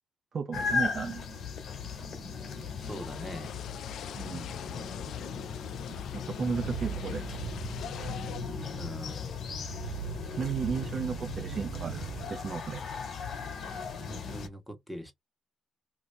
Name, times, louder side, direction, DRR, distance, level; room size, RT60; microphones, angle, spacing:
voice 1, 0.3-1.2 4.1-4.5 6.1-7.4 10.4-12.0 12.3-12.8, right 5 dB, 45° right, 0.6 m, -34 dB
sound 1, 0.5-14.5, left 5 dB, 60° left, 1.4 m, -37 dB
sound 2, 2.8-8.4, left 10 dB, 75° left, 0.4 m, -45 dB
voice 2, 2.8-3.6 8.8-9.4 13.9-15.1, equal, ahead, 1.3 m, -42 dB
sound 3, 6.6-12.3, right 8 dB, 75° right, 0.8 m, -40 dB
3.0 x 2.8 x 3.3 m
cardioid pair, 90°, 0 cm